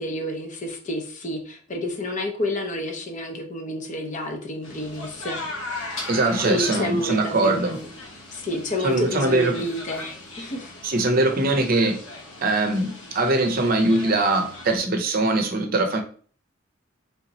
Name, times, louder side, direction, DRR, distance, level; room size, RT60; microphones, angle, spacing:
voice 1, 0.0-5.8 6.4-7.9 8.3-10.1 10.4-10.7, left 1 dB, 40° left, 3 dB, 0.7 m, -29 dB
sound 1, 4.6-14.8, left 2 dB, 80° left, 1.2 m, -38 dB
voice 2, 6.1-7.8 8.8-9.6 10.8-12.0 12.4-16.0, right 2 dB, 45° right, 5 dB, 0.7 m, -22 dB
3.5 x 2.9 x 4.0 m, 0.43 s
head